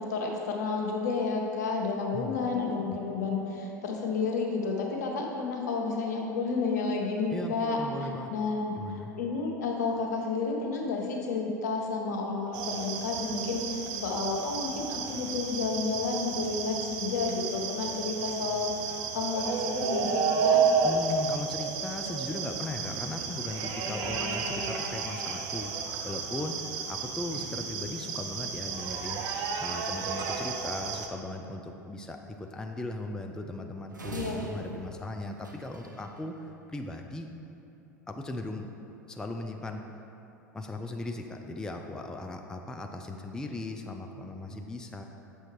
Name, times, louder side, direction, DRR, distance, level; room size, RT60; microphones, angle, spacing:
voice 1, 0.0-18.7 19.1-20.6 34.1-34.4, left 4 dB, 65° left, 0 dB, 0.9 m, -31 dB
voice 2, 7.3-8.3 8.8-9.1 20.8-37.3 38.1-38.7 39.1-39.8 40.5-45.0, left 2 dB, 5° left, 4 dB, 0.3 m, -38 dB
sound 1, 12.5-31.1, right 5 dB, 45° right, 0.6 m, -32 dB
sound 2, 33.9-36.2, right 2 dB, 85° right, 0.5 m, -42 dB
7.4 x 5.5 x 3.2 m, 2.9 s
figure-of-eight pair, 80°, 10 cm